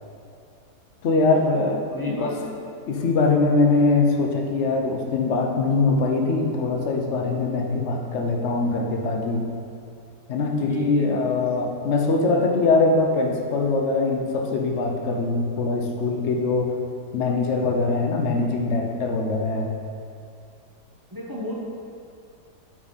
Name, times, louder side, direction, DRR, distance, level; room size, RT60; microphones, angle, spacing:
voice 1, 1.0-2.3 2.9-9.4 10.3-16.7 17.1-19.7, left 3 dB, 55° left, 1 dB, 0.9 m, -22 dB
voice 2, 1.9-2.5 10.6-11.2 12.3-12.5 21.1-21.6, left 1 dB, 20° right, -5 dB, 0.5 m, -32 dB
9.1 x 5.3 x 4.0 m, 2.4 s
omnidirectional pair, 1.9 m